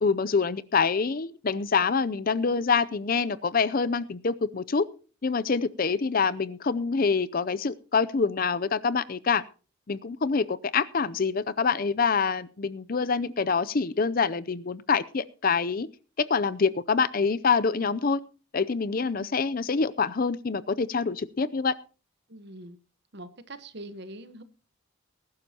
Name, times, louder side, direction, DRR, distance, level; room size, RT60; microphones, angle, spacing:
voice 1, 0.0-4.9 5.2-9.4 9.9-15.9 16.3-18.2 18.5-21.7, left 5 dB, 45° left, 16 dB, 0.5 m, -26 dB
voice 2, 22.3-22.8 23.1-24.4, right 1 dB, 55° right, 12 dB, 1.2 m, -43 dB
20.0 x 11.5 x 2.9 m, 0.35 s
head